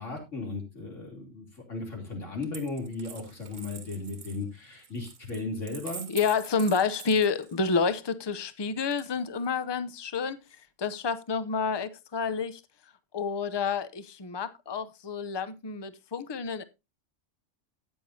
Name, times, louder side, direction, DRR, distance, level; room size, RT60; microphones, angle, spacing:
voice 1, 0.0-6.0, left 3 dB, 80° left, 3.5 m, -36 dB
Coin (dropping), 2.4-7.8 8.9-9.6, right 7 dB, 80° right, 1.5 m, -46 dB
voice 2, 6.1-12.6 13.1-16.6, left 5 dB, 30° left, 0.5 m, -29 dB
13.0 x 9.0 x 2.7 m
omnidirectional pair, 1.3 m